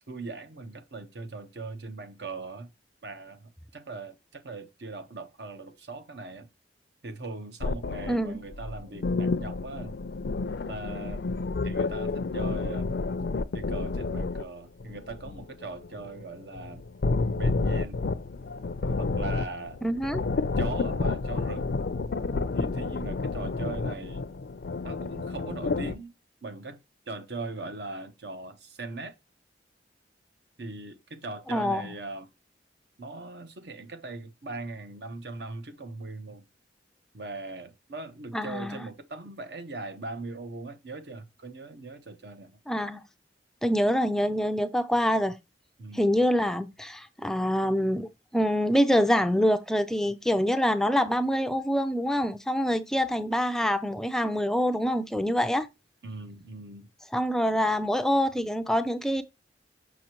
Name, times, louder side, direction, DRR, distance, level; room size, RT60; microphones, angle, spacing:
voice 1, 0.1-2.7 3.0-6.5 7.0-10.0 10.7-11.2 11.6-12.9 13.5-16.9 17.3-18.0 19.0-19.8 20.6-21.8 22.5-24.3 24.8-26.1 26.4-26.8 27.1-29.1 30.6-32.3 33.0-36.4 37.1-42.6 45.8-46.1 56.0-56.9, right 3 dB, 70° right, 1.0 m, -40 dB
sound 1, 7.6-14.4 14.8-25.9, left 3 dB, 65° left, 0.5 m, -30 dB
voice 2, 8.1-8.4 19.8-20.2 31.5-31.9 38.3-38.9 42.7-43.0 43.6-45.4 45.9-55.7 57.1-59.2, equal, 5° left, 0.3 m, -25 dB
6.2 x 6.0 x 3.0 m
head